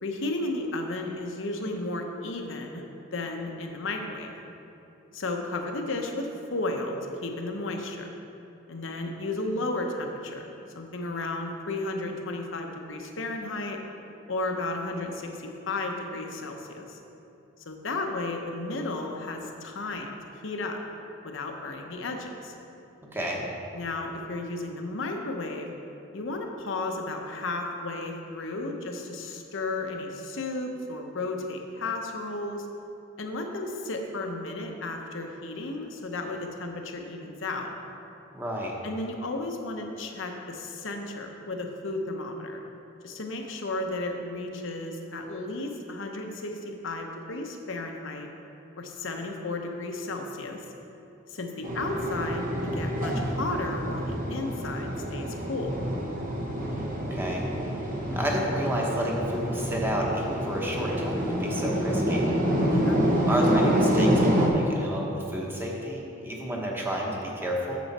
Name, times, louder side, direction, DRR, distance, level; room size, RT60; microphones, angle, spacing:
voice 1, 0.0-2.8 3.1-4.3 5.1-7.0 7.2-8.1 8.7-13.8 14.3-15.3 15.7-17.0 17.7-20.1 20.4-20.8 21.2-22.5 23.7-25.7 26.1-32.7 33.2-37.7 38.8-42.6 43.0-48.3 48.8-50.6 51.3-55.7 62.7-63.0, left 2 dB, 70° left, 3 dB, 0.9 m, -33 dB
voice 2, 23.1-23.4 38.3-38.7 56.5-57.4 58.2-62.3 63.3-67.8, equal, 10° right, -2 dB, 1.2 m, -30 dB
sound 1, 51.6-64.5, equal, 45° right, 1.2 m, -27 dB
9.3 x 7.0 x 4.2 m, 2.9 s
head